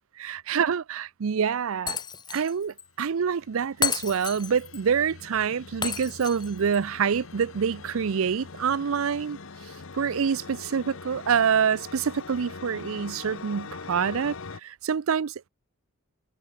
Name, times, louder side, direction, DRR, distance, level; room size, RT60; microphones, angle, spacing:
voice 1, 0.2-2.0 2.3-9.4 9.9-14.4 14.6-15.5, right 7 dB, 65° right, 0.5 m, -26 dB
Shatter, 1.9-2.5 2.8-2.9 3.8-4.8 5.8-6.8, left 6 dB, 20° left, 1.2 m, -31 dB
sound 1, 3.0-14.6, left 4 dB, 65° left, 1.1 m, -43 dB
head